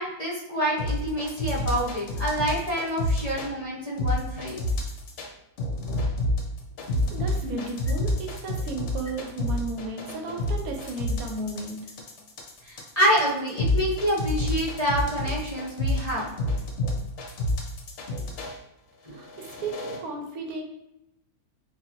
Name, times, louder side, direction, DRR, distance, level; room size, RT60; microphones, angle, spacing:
voice 1, 0.0-4.6 12.6-16.3, equal, 30° left, -8 dB, 1.0 m, -27 dB
sound 1, 0.8-3.5 4.0-5.3 5.6-18.6 19.1-20.0, left 1 dB, 60° left, 0.9 m, -28 dB
voice 2, 7.1-11.9 19.1-20.6, right 3 dB, 75° right, 2 dB, 1.1 m, -34 dB
3.9 x 2.6 x 2.9 m, 0.85 s
omnidirectional pair, 1.5 m